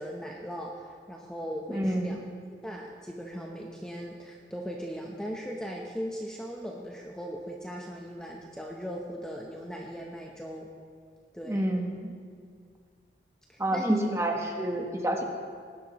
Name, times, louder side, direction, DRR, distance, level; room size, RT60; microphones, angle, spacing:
voice 1, 0.0-2.2 2.6-10.7 11.3-11.7 13.5-14.1, equal, 5° left, -1 dB, 0.7 m, -38 dB
voice 2, 1.7-2.1 11.5-12.2 13.6-15.2, right 1 dB, 15° right, 2 dB, 1.1 m, -28 dB
20.0 x 11.0 x 3.0 m, 2.1 s
head